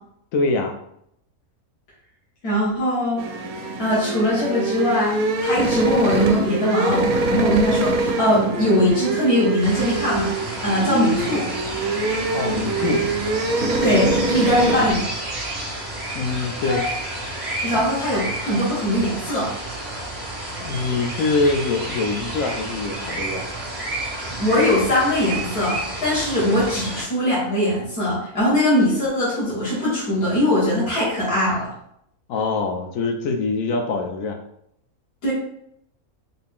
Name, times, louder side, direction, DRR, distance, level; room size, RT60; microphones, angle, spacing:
voice 1, 0.3-0.7 11.2-11.3 12.3-13.0 16.1-16.8 17.7-17.8 20.6-23.5 32.3-34.4, left 3 dB, 70° left, 3 dB, 1.0 m, -24 dB
voice 2, 2.4-3.2 3.8-10.3 10.6-11.4 13.8-15.0 16.6-16.8 17.6-19.5 24.2-31.7 35.2-35.3, left 1 dB, 90° left, -8 dB, 1.8 m, -21 dB
sound 1, 3.2-14.9, right 3 dB, 80° right, 1.1 m, -24 dB
sound 2, 9.6-27.0, right 1 dB, 5° right, 1.5 m, -31 dB
4.0 x 2.8 x 3.5 m, 0.74 s
omnidirectional pair, 1.5 m